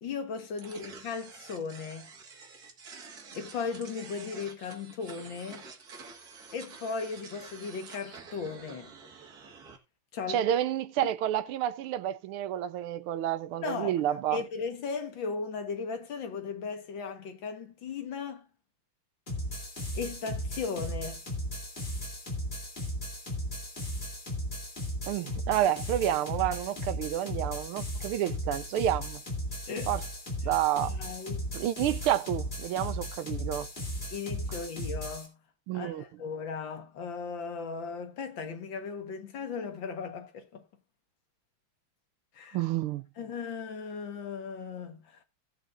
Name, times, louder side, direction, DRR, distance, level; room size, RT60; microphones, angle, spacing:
voice 1, 0.0-2.1 3.3-5.6 6.5-8.9 10.1-10.4 13.6-14.0 14.3-18.5 19.9-21.2 29.7-29.9 30.9-31.5 34.1-35.3 35.7-40.6 42.3-42.6 43.2-45.2, left 5 dB, 65° left, 2.1 m, -37 dB
sound 1, 0.6-9.8, right 5 dB, 50° right, 2.1 m, -49 dB
voice 2, 10.3-14.4 25.1-29.2 29.9-30.0 30.4-31.0 31.5-33.7 35.7-36.0 42.5-43.0, right 12 dB, 85° right, 1.6 m, -29 dB
sound 2, 19.3-35.3, equal, 25° left, 3.3 m, -36 dB
17.5 x 7.7 x 2.5 m
omnidirectional pair, 2.3 m